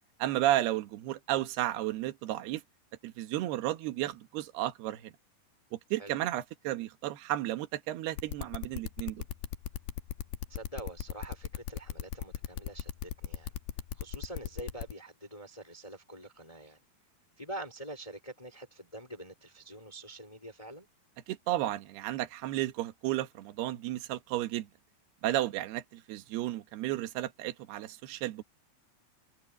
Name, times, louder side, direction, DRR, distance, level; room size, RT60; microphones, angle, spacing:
voice 1, 0.2-2.6 3.0-5.1 5.7-9.2 21.3-24.7 25.2-28.4, right 14 dB, 70° right, 3.2 m, -33 dB
sound 1, 8.2-14.9, left 11 dB, 75° left, 2.6 m, -37 dB
voice 2, 10.5-13.5 13.9-16.8 17.4-20.9, right 1 dB, 10° left, 3.6 m, -45 dB
omnidirectional pair, 5.1 m